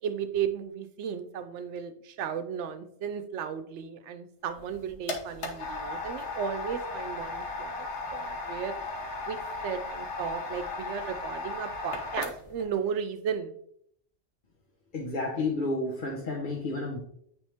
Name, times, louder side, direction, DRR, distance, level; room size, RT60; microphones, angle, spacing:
voice 1, 0.0-8.7 9.2-9.4 9.6-13.5, right 7 dB, 85° right, 10 dB, 0.9 m, -35 dB
sound 1, 4.5-12.7, left 3 dB, 80° left, 1.4 m, -36 dB
voice 2, 14.9-17.0, left 2 dB, 45° left, -2 dB, 1.1 m, -31 dB
9.1 x 3.5 x 3.4 m, 0.68 s
omnidirectional pair, 1.2 m